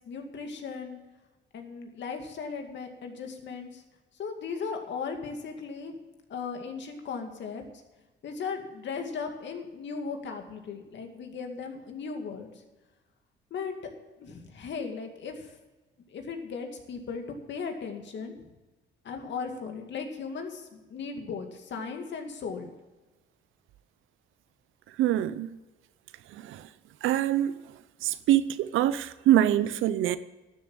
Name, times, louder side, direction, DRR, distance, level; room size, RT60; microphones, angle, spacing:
voice 1, 0.1-1.0 1.5-3.8 4.1-6.0 6.3-7.6 8.2-12.6 13.5-13.7 14.2-15.6 16.1-18.5 19.0-22.7, left 5 dB, 65° left, 4 dB, 2.2 m, -37 dB
voice 2, 25.0-25.5 26.3-26.7 27.0-27.5 28.0-30.2, right 12 dB, 85° right, 15 dB, 0.6 m, -24 dB
12.5 x 7.3 x 8.8 m, 1.1 s
cardioid pair, 90°, 20 cm